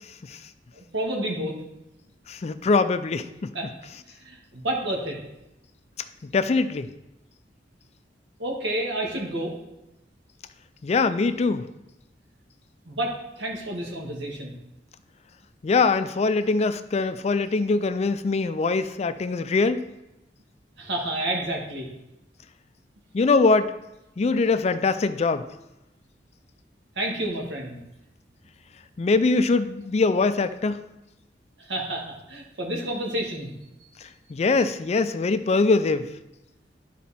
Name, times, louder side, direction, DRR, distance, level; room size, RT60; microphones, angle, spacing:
voice 1, 0.7-1.6 3.5-3.7 4.2-5.2 8.4-9.5 12.9-14.5 20.8-21.9 27.0-27.8 31.6-33.5, right 1 dB, 80° right, 0 dB, 1.8 m, -30 dB
voice 2, 2.3-3.5 6.3-6.9 10.8-11.7 15.6-19.8 23.1-23.7 24.2-25.4 29.0-30.8 34.3-36.1, left 3 dB, 35° left, 11 dB, 0.4 m, -22 dB
11.5 x 4.1 x 4.2 m, 0.93 s
head